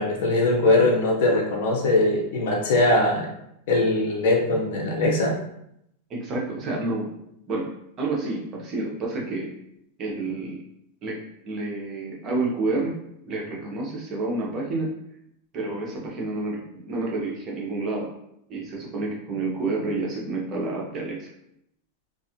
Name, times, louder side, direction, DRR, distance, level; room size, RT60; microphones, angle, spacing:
voice 1, 0.0-3.3 3.7-5.4, left 2 dB, 65° left, -1 dB, 0.7 m, -21 dB
voice 2, 6.1-7.1 7.5-7.7 8.0-9.5 10.0-10.6 11.0-12.9 13.3-14.9 15.5-18.1 18.5-21.3, right 2 dB, 30° right, -2 dB, 0.7 m, -29 dB
2.4 x 2.3 x 2.8 m, 0.76 s
supercardioid pair, 155°, 0 cm